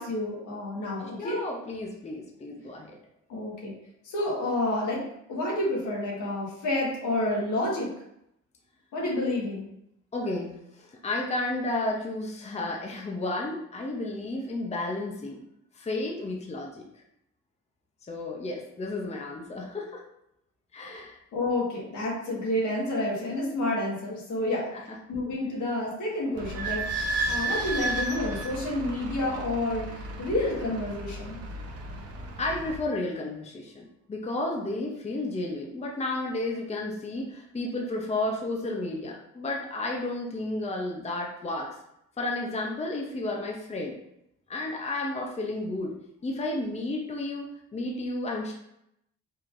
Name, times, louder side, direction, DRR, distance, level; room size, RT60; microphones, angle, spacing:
voice 1, 0.0-1.4 3.3-3.7 4.0-5.0 5.3-7.9 8.9-9.6 21.3-26.8 27.3-31.4, left 1 dB, 80° left, -4 dB, 1.6 m, -29 dB
voice 2, 1.2-3.0 10.1-15.4 15.7-16.8 18.1-20.0 20.7-21.2 24.7-24.8 32.4-41.7 42.2-44.0 44.5-46.0 46.2-48.5, left 2 dB, 20° left, 0 dB, 0.7 m, -32 dB
Idling / Squeak, 26.3-32.8, right 2 dB, 55° right, 0.7 m, -33 dB
4.5 x 3.5 x 2.5 m, 0.78 s
cardioid pair, 90°, 30 cm